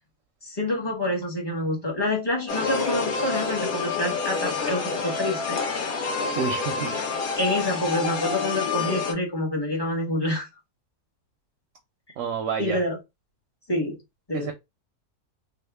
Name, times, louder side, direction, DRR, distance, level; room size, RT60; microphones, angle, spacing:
voice 1, 0.5-5.6 7.4-10.5 12.6-13.0 13.7-13.9 14.3-14.5, left 1 dB, 20° left, 0.8 m, -27 dB
sound 1, 2.5-9.1, left 4 dB, 70° left, 1.3 m, -28 dB
voice 2, 6.4-7.1 12.2-12.8 14.3-14.5, right 7 dB, 65° right, 0.8 m, -29 dB
2.9 x 2.3 x 3.3 m
omnidirectional pair, 1.6 m